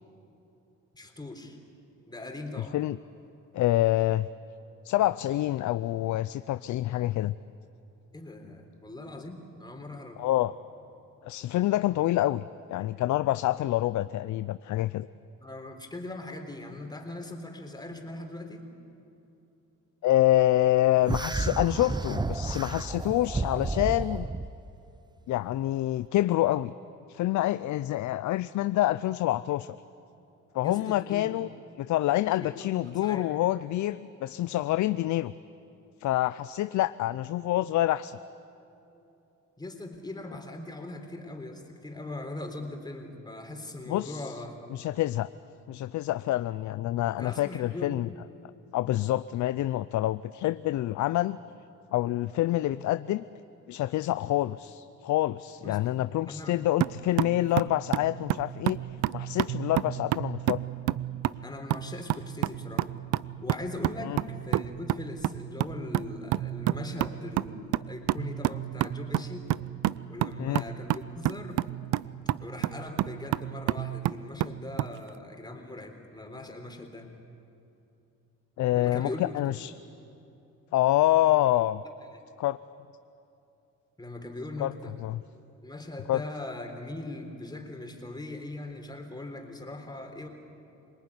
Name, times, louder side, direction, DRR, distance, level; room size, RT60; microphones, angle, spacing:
voice 1, 0.9-1.6 2.1-2.8 8.1-10.4 15.4-18.7 30.6-31.4 32.4-33.3 38.9-39.1 39.6-44.7 47.2-48.0 55.6-55.8 56.3-56.6 61.4-62.9 63.4-69.5 70.1-71.6 72.4-77.1 78.8-79.5 82.1-82.2 84.0-84.9 85.6-90.3, left 2 dB, 15° left, 3 dB, 3.7 m, -40 dB
voice 2, 2.6-3.0 3.5-4.3 4.8-7.4 10.2-10.5 11.2-12.4 12.7-15.1 20.0-24.3 25.3-26.7 27.1-29.8 30.5-31.5 31.8-35.3 36.0-38.2 43.9-44.4 44.7-45.3 45.7-48.1 48.7-51.4 51.9-53.2 53.7-58.8 59.1-60.6 64.0-64.2 70.4-70.6 78.6-79.7 80.7-81.8 82.4-82.6 84.6-84.7 85.0-85.2 86.1-86.2, left 14 dB, 70° left, 14 dB, 0.5 m, -27 dB
sound 1, 21.1-24.5, right 3 dB, 15° right, 0.7 m, -31 dB
sound 2, 56.8-75.0, right 14 dB, 80° right, 0.5 m, -30 dB
26.5 x 19.5 x 9.7 m, 2.8 s
cardioid pair, 90°, 30 cm